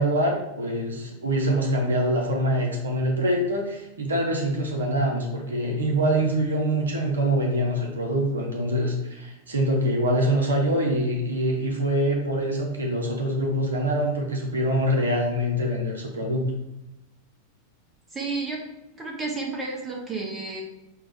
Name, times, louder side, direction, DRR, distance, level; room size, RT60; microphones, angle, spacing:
voice 1, 0.0-16.4, right 1 dB, 70° right, 1 dB, 0.7 m, -24 dB
voice 2, 18.1-18.6 18.9-20.6, right 3 dB, 15° right, -1 dB, 1.0 m, -31 dB
5.9 x 2.2 x 3.3 m, 0.93 s
figure-of-eight pair, 90°, 0 cm